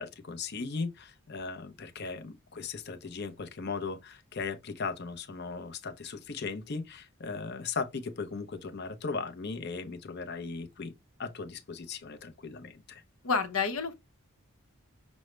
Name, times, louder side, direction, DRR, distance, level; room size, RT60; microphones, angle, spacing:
voice 1, 0.0-10.9 11.2-13.0, left 4 dB, 50° left, 0.6 m, -37 dB
voice 2, 13.2-13.9, left 5 dB, 85° left, 0.8 m, -29 dB
6.1 x 2.1 x 3.1 m
head